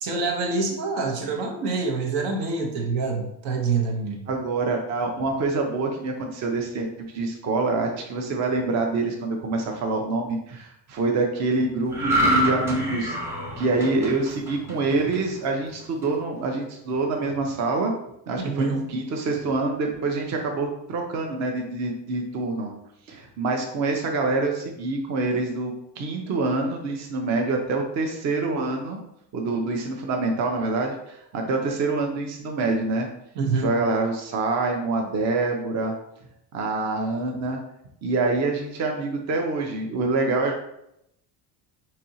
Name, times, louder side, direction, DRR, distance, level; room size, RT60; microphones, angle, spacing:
voice 1, 0.0-4.3 18.4-18.8 33.3-33.7, right 4 dB, 80° right, 2 dB, 0.9 m, -26 dB
voice 2, 4.3-6.9 7.1-13.2 13.6-17.9 18.3-22.7 23.1-29.0 29.3-33.1 33.5-35.9 36.5-37.6 38.0-40.6, right 3 dB, 40° right, 2 dB, 0.6 m, -26 dB
sound 1, 11.9-15.4 15.8-16.1, right 1 dB, 5° right, 0.8 m, -26 dB
4.2 x 2.8 x 2.7 m, 0.79 s
cardioid pair, 140°, 42 cm